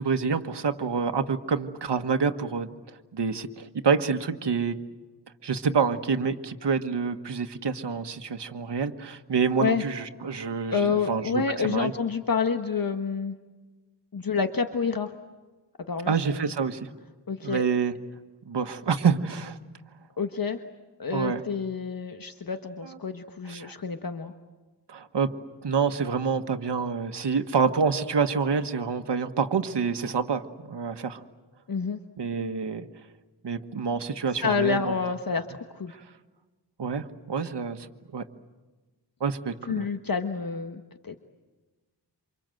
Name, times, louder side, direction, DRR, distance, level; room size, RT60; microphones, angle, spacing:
voice 1, 0.0-2.7 3.1-4.8 5.4-11.9 16.1-16.9 17.4-17.9 18.4-19.6 21.1-21.4 22.8-22.9 23.5-23.7 24.9-25.3 25.6-31.2 32.2-32.9 33.4-34.9 35.9-36.0 36.8-37.9 38.1-38.2 39.2-39.9, right 5 dB, 75° right, 7 dB, 1.5 m, -27 dB
voice 2, 10.7-13.4 14.1-15.1 15.9-16.5 17.3-17.6 20.2-20.6 21.0-24.3 31.7-32.0 34.4-36.0 39.7-41.2, left 5 dB, 55° left, 7 dB, 1.4 m, -28 dB
28.5 x 26.5 x 7.8 m, 1.2 s
wide cardioid pair, 100°, 42 cm